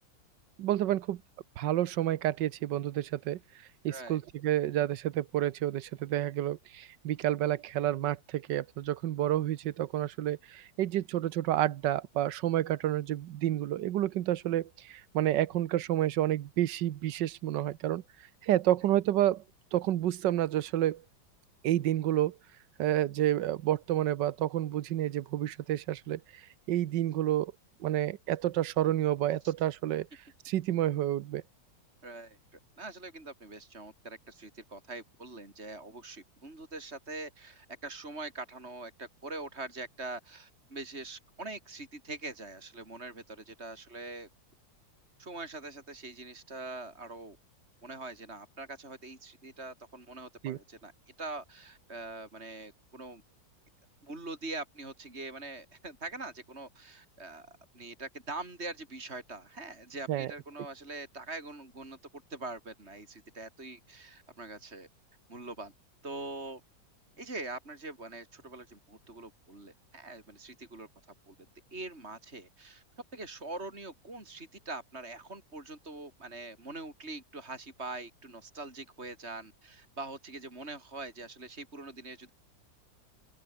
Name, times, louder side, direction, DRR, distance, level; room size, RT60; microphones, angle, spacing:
voice 1, 0.6-1.2 1.6-3.4 3.8-18.0 18.4-19.4 19.7-21.0 21.6-22.3 22.8-26.2 26.7-27.5 27.8-30.1 30.4-31.4 50.4-50.6 60.1-60.3, right 12 dB, 70° right, 1.4 m, -29 dB
voice 2, 3.9-4.2 29.4-29.5 32.0-44.3 45.2-47.4 47.8-50.9 51.2-53.2 54.0-62.0 62.3-64.9 65.3-65.7 66.0-66.6 67.2-70.9 71.3-71.4 71.7-72.8 73.1-82.3, right 2 dB, 35° right, 5.5 m, -43 dB
open air
omnidirectional pair, 2.1 m